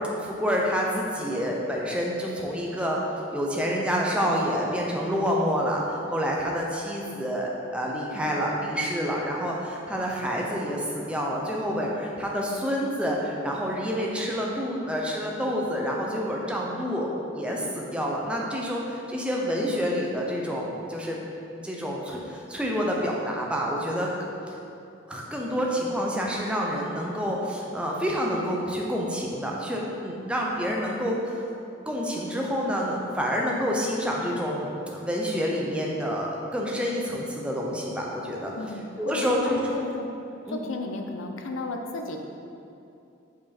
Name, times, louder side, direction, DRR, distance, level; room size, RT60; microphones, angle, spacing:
voice 1, 0.2-3.0 3.3-17.1 17.3-21.2 21.5-24.1 25.1-31.4 31.9-39.6 40.5-40.7, equal, 5° right, -2 dB, 0.7 m, -28 dB
voice 2, 38.5-40.1 40.5-42.2, left 2 dB, 75° left, 4 dB, 0.6 m, -33 dB
6.1 x 5.2 x 4.2 m, 2.7 s
head